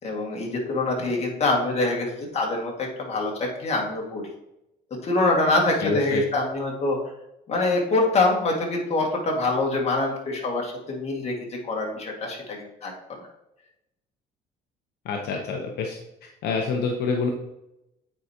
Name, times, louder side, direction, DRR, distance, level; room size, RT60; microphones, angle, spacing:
voice 1, 0.0-4.3 5.0-7.1 7.5-13.3, left 2 dB, 40° left, -1 dB, 1.9 m, -25 dB
voice 2, 5.8-6.2 15.1-16.0 16.4-17.3, left 4 dB, 75° left, 2 dB, 0.8 m, -26 dB
8.8 x 4.7 x 2.8 m, 0.88 s
cardioid pair, 110°, 17 cm